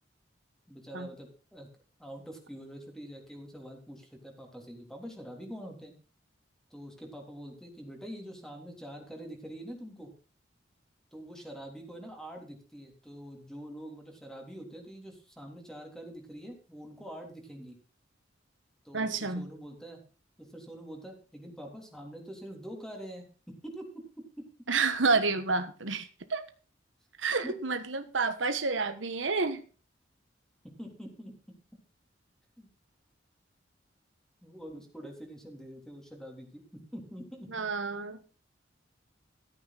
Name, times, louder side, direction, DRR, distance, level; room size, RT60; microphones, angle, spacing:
voice 1, 0.7-1.7 2.0-6.0 6.7-10.1 11.1-17.7 18.8-20.0 20.4-23.8 24.2-24.4 27.4-27.5 30.8-31.3 32.6-32.7 34.4-37.5, equal, 5° left, 1 dB, 3.4 m, -45 dB
voice 2, 18.9-19.5 24.7-26.4 27.2-29.6 37.5-38.2, right 4 dB, 85° right, 9 dB, 1.4 m, -29 dB
14.5 x 8.9 x 4.1 m, 0.36 s
head